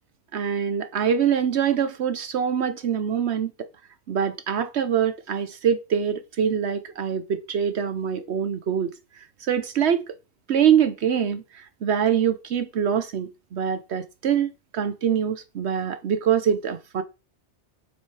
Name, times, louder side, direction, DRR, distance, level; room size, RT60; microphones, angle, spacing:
voice 1, 0.3-3.7 4.1-8.9 9.4-10.2 10.5-17.0, right 8 dB, 65° right, 1.0 m, -24 dB
7.4 x 5.8 x 4.7 m
omnidirectional pair, 1.2 m